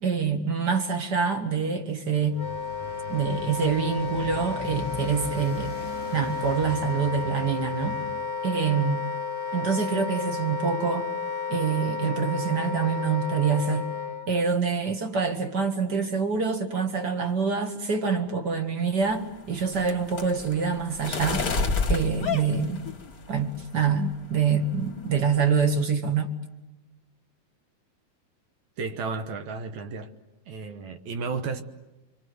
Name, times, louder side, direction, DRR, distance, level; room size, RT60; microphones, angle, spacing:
voice 1, 0.0-2.4 3.1-5.7 6.1-8.0 8.4-9.0 9.5-11.1 11.5-13.9 14.3-21.5 21.9-22.8 23.3-26.3, right 5 dB, 40° right, 1.5 m, -26 dB
Motorcycle, 2.2-8.3, right 1 dB, 85° right, 5.6 m, -40 dB
Wind instrument woodwind instrument, 2.3-14.3, left 4 dB, 50° left, 1.7 m, -32 dB
sound 1, 19.0-23.4 23.9-24.3 24.6-24.9 25.2-25.8, left 3 dB, 35° left, 1.5 m, -30 dB
voice 2, 28.8-30.1 30.5-31.6, right 4 dB, 65° right, 2.0 m, -33 dB
26.0 x 24.5 x 7.9 m
omnidirectional pair, 4.4 m